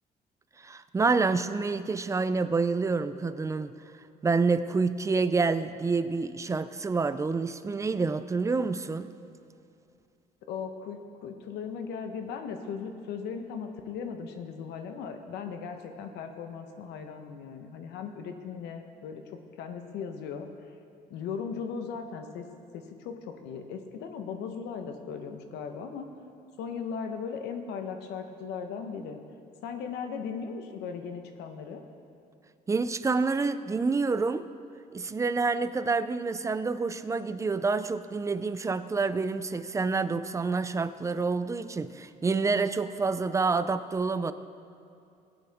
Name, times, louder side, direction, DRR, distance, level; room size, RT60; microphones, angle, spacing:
voice 1, 0.6-3.7 4.2-9.1 32.7-34.5 34.9-44.3, right 4 dB, 20° right, 12 dB, 0.4 m, -28 dB
voice 2, 10.5-19.2 19.6-20.5 21.1-22.5 22.7-26.1 26.6-29.2 29.6-31.8, left 6 dB, 80° left, 6 dB, 1.0 m, -37 dB
17.0 x 9.2 x 3.5 m, 2.5 s
cardioid pair, 110°, 17 cm